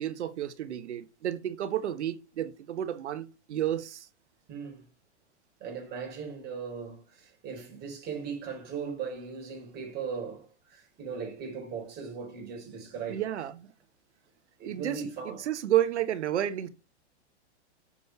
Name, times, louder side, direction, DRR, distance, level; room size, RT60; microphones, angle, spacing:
voice 1, 0.0-4.1 13.1-13.7 14.6-16.7, right 12 dB, 75° right, 1.3 m, -31 dB
voice 2, 4.5-4.9 5.6-13.3 14.6-15.5, right 6 dB, 30° right, 4.7 m, -38 dB
7.2 x 6.5 x 4.8 m
hypercardioid pair, 130°, 35 cm